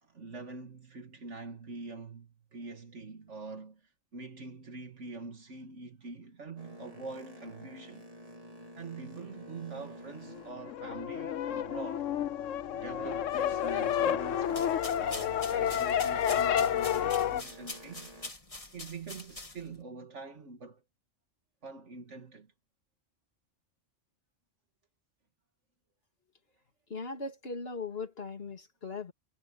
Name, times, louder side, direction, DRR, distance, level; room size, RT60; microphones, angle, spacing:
voice 1, 0.0-8.0 8.8-12.1 12.8-18.1 18.7-20.8 21.6-22.5, right 4 dB, 70° right, 2.1 m, -45 dB
Boat Water vehicle, 6.6-11.6 12.0-18.3, equal, 30° right, 3.1 m, -50 dB
sound 1, 10.3-17.4, left 9 dB, 80° left, 1.1 m, -30 dB
sound 2, 14.4-19.8, left 2 dB, 25° left, 2.4 m, -45 dB
voice 2, 26.9-29.1, left 4 dB, 50° left, 2.6 m, -39 dB
omnidirectional pair, 1.3 m